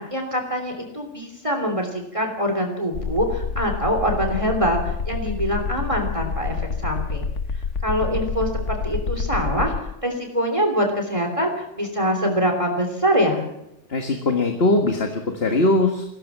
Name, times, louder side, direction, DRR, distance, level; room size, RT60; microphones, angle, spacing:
voice 1, 0.0-6.5 6.8-7.3 7.8-13.5, equal, 25° right, 3 dB, 3.3 m, -24 dB
sound 1, 2.9-9.8, left 5 dB, 70° left, 1.5 m, -28 dB
voice 2, 13.9-16.1, left 2 dB, 50° left, 5 dB, 1.9 m, -20 dB
22.0 x 16.5 x 7.4 m, 0.86 s
omnidirectional pair, 1.3 m